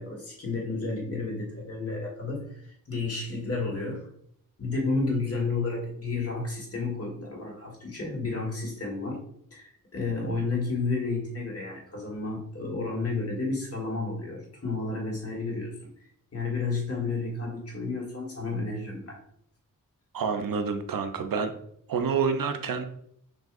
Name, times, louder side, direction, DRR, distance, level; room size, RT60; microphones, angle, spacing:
voice 1, 0.0-4.1 4.6-9.2 9.5-15.7 16.3-19.2, left 3 dB, 45° left, -2 dB, 1.5 m, -31 dB
voice 2, 20.1-21.5 21.9-22.9, right 6 dB, 75° right, 7 dB, 0.6 m, -28 dB
6.1 x 2.7 x 2.4 m, 0.68 s
wide cardioid pair, 120°, 34 cm